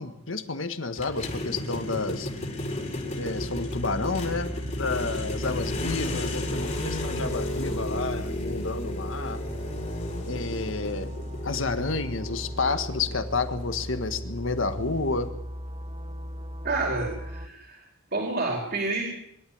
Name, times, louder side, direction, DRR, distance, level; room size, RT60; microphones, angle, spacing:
voice 1, 0.0-2.3 3.2-4.5 4.8-9.4 10.3-11.1 11.4-15.3, left 3 dB, 75° left, 9 dB, 1.7 m, -30 dB
sound 1, 1.0-15.3, left 1 dB, 35° left, 4.2 m, -34 dB
sound 2, 3.0-17.5, equal, 25° right, 1.2 m, -37 dB
voice 2, 16.6-17.8 18.1-19.0, right 3 dB, 50° right, 0 dB, 4.4 m, -29 dB
24.0 x 12.5 x 8.8 m, 0.77 s
head